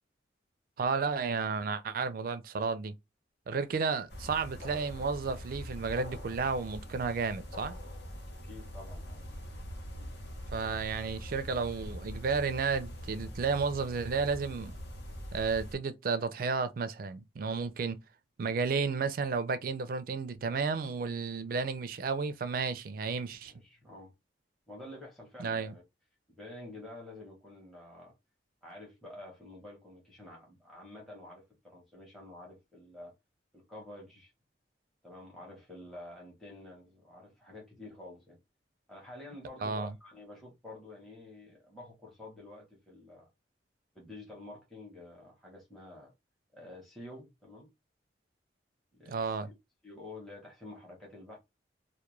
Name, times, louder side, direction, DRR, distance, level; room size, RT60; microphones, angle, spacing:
voice 1, 0.8-2.9 3.5-7.8 10.5-14.7 15.3-18.0 18.4-23.5 25.4-25.8 39.6-39.9 49.1-49.5, right 5 dB, 50° right, 0.4 m, -32 dB
sound 1, 4.1-15.8, equal, 60° left, 0.8 m, -43 dB
voice 2, 8.4-9.2 10.0-10.1 23.4-24.1 24.7-25.8 26.4-28.1 28.6-33.1 33.5-34.3 35.0-38.4 38.9-43.3 43.9-46.1 46.5-47.7 48.9-49.5 49.8-51.4, left 2 dB, ahead, 0.8 m, -49 dB
2.2 x 2.1 x 3.0 m
head